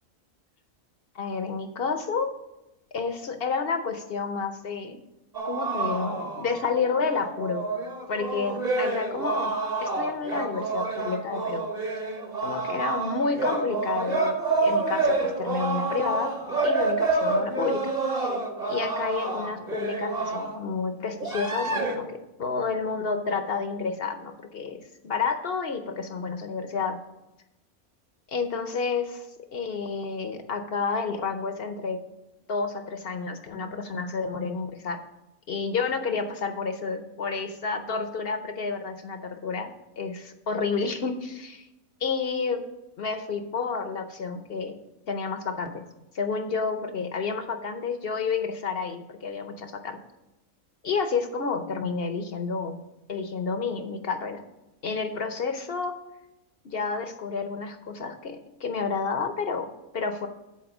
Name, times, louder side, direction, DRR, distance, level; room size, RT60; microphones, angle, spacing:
voice 1, 1.1-2.3 2.9-5.0 5.4-7.6 8.1-9.5 9.8-11.6 12.4-16.3 16.6-18.3 18.7-22.1 22.4-27.0 28.3-32.0 32.5-35.0 35.5-41.7 42.0-42.6 43.0-44.8 45.1-45.9 46.1-50.0 50.8-52.8 53.1-54.4 54.8-56.0 56.6-60.3, left 5 dB, 50° left, 7 dB, 0.8 m, -30 dB
sound 1, 5.3-20.6 21.2-22.0, right 3 dB, 30° right, 1.3 m, -28 dB
10.5 x 4.6 x 6.0 m, 0.96 s
omnidirectional pair, 1.5 m